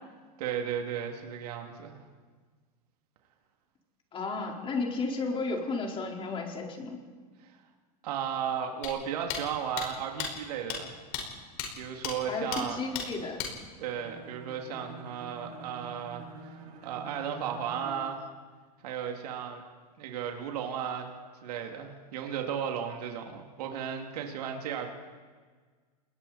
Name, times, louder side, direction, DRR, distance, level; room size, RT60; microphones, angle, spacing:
voice 1, 0.4-2.0 7.4-7.6 8.0-10.9 11.7-12.8 13.8-18.2 18.8-19.6 20.0-21.1 21.4-24.9, right 8 dB, 75° right, 2 dB, 2.9 m, -35 dB
voice 2, 4.1-7.0 12.3-13.4, left 3 dB, 25° left, 0 dB, 4.5 m, -33 dB
sound 1, 8.8-8.9 9.3-9.4 9.8-9.9 10.2-10.3 10.7-10.8 11.1-11.2 11.6-11.7 12.0-12.1 12.5-12.6 12.9-13.1 13.4-13.5, left 8 dB, 60° left, 5.4 m, -33 dB
Bowed string instrument, 13.9-18.1, right 3 dB, 60° right, 5.7 m, -47 dB
28.5 x 21.0 x 4.4 m, 1.5 s
hypercardioid pair, 115°, 20 cm